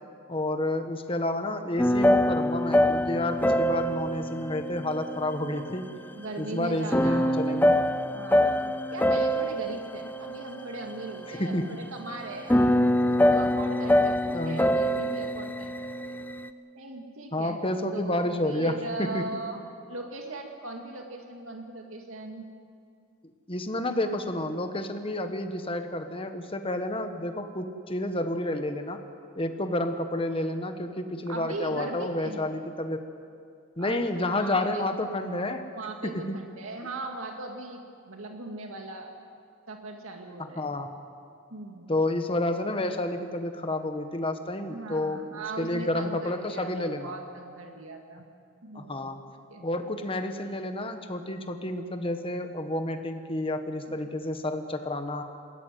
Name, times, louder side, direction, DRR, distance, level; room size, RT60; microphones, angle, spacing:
voice 1, 0.3-5.9 6.4-7.8 11.4-11.8 14.3-14.6 17.3-18.7 19.0-19.3 23.5-29.0 29.4-33.0 33.8-35.7 36.0-36.4 40.6-40.9 41.9-47.1 48.7-49.2 49.6-55.2, left 1 dB, 25° left, 7 dB, 1.3 m, -30 dB
sound 1, 1.8-5.9 6.9-11.3 12.2-16.5, left 1 dB, 10° left, 0.5 m, -25 dB
voice 2, 6.1-7.6 8.1-11.5 11.9-12.8 13.3-16.2 16.7-17.6 17.9-19.6 19.9-22.5 31.3-32.4 33.8-34.8 35.8-37.8 38.1-39.1 39.7-40.7 41.5-42.0 44.7-48.3 48.6-49.1 49.5-49.7 54.0-54.1, right 2 dB, 80° right, 2 dB, 2.2 m, -39 dB
20.5 x 16.0 x 9.3 m, 2.3 s
head